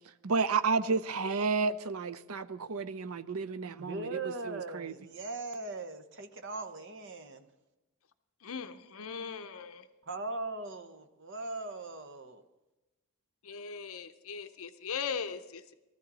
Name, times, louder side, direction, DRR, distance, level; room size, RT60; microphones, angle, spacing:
voice 1, 0.2-4.9, right 4 dB, 75° right, 0.6 m, -31 dB
voice 2, 3.6-7.5 10.1-12.4, right 3 dB, 55° right, 1.1 m, -40 dB
voice 3, 8.4-9.9 13.4-15.7, left 6 dB, 70° left, 0.7 m, -39 dB
18.0 x 13.5 x 4.1 m
head